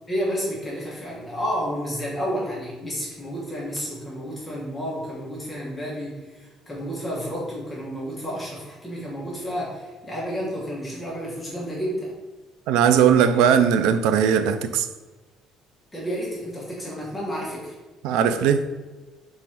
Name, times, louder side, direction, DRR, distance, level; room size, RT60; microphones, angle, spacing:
voice 1, 0.1-12.1 15.9-17.7, equal, 15° left, -6 dB, 1.2 m, -31 dB
voice 2, 12.7-14.9 18.0-18.7, right 8 dB, 90° right, 10 dB, 0.3 m, -19 dB
3.7 x 3.0 x 4.5 m, 1.2 s
cardioid pair, 135°, 0 cm